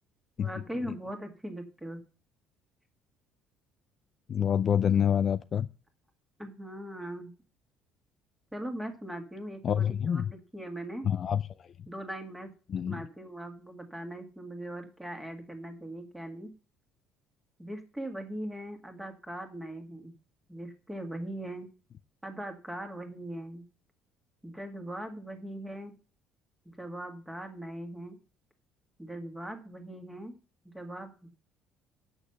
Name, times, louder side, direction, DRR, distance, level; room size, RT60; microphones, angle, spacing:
voice 1, 0.4-2.0 6.4-7.3 8.5-11.1 11.9-12.5 12.9-16.5 17.6-20.1 20.5-21.7 22.2-23.6 24.4-25.9 26.7-28.2 29.0-30.3 30.6-31.3, right 1 dB, 5° right, 1.8 m, -40 dB
voice 2, 4.3-5.7 9.6-10.2 11.1-11.4 12.7-13.0, left 8 dB, 35° left, 0.4 m, -26 dB
8.2 x 6.4 x 6.9 m
cardioid pair, 160°, 0 cm